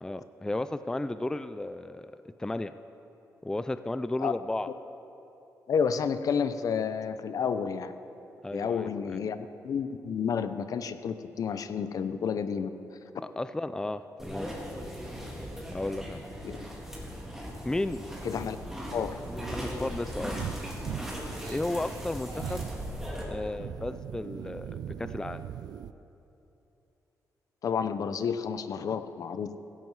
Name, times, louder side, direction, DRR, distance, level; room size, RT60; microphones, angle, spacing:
voice 1, 0.0-2.1 2.4-2.7 3.4-4.7 8.4-9.2 13.2-14.5 15.7-16.2 17.7-18.0 19.5-20.4 21.5-22.7 23.3-25.5, left 2 dB, 10° left, 12 dB, 0.4 m, -33 dB
voice 2, 5.7-7.9 8.5-9.4 9.6-12.7 16.4-16.6 18.2-18.6 18.9-19.2 27.6-29.5, left 6 dB, 60° left, 11 dB, 0.7 m, -30 dB
sound 1, 14.2-23.2, equal, 5° right, 3.5 m, -38 dB
sound 2, 17.8-25.9, right 10 dB, 85° right, 0.5 m, -42 dB
16.5 x 15.0 x 4.8 m, 2.9 s
cardioid pair, 105°, 7 cm